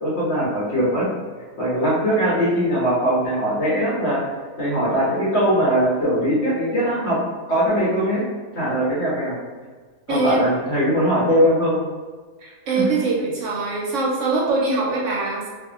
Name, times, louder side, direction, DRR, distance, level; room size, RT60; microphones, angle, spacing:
voice 1, 0.0-1.1 1.6-4.2 4.6-7.2 7.5-8.2 8.5-9.4 10.1-11.8 12.7-12.9, equal, 55° left, -7 dB, 1.2 m, -20 dB
voice 2, 10.1-10.4 12.4-15.5, right 3 dB, 70° right, -3 dB, 0.9 m, -23 dB
2.7 x 2.5 x 2.4 m, 1.4 s
omnidirectional pair, 1.4 m